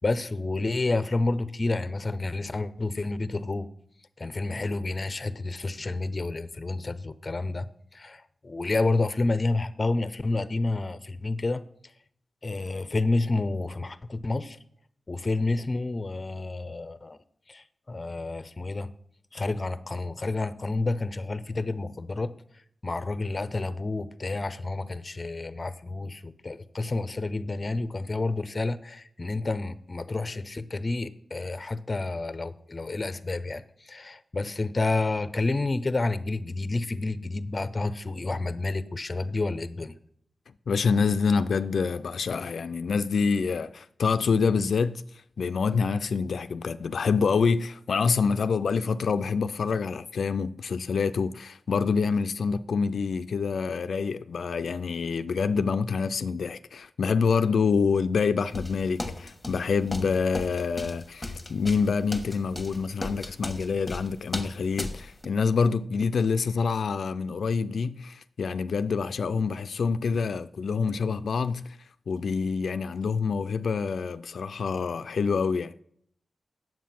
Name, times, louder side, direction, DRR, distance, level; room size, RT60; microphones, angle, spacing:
voice 1, 0.0-3.7 4.2-7.7 7.9-11.6 12.4-14.6 15.1-17.2 17.5-18.9 19.3-22.3 22.8-39.9, left 2 dB, 35° left, 0.6 m, -29 dB
voice 2, 40.7-45.0 45.4-71.8 72.1-75.8, left 5 dB, 85° left, 0.3 m, -26 dB
sound 1, 58.5-65.3, left 2 dB, 15° left, 1.3 m, -36 dB
9.3 x 7.6 x 5.9 m
wide cardioid pair, 110°, 0 cm